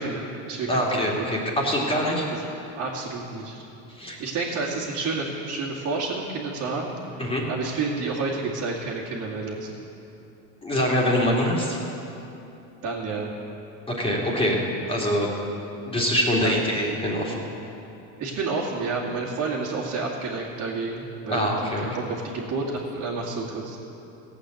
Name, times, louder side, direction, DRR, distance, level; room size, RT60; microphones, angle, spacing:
voice 1, 0.0-1.1 2.3-2.4 2.7-3.6 4.2-6.9 7.5-9.8 12.8-13.3 16.4-16.6 18.2-23.8, right 3 dB, 45° right, -6 dB, 2.3 m, -30 dB
voice 2, 0.7-2.3 3.9-4.2 7.2-7.4 10.6-11.8 13.9-14.6 14.9-15.3 15.9-17.3 21.3-21.8, equal, 15° left, -3 dB, 2.7 m, -24 dB
16.0 x 8.4 x 7.9 m, 2.9 s
supercardioid pair, 125°, 38 cm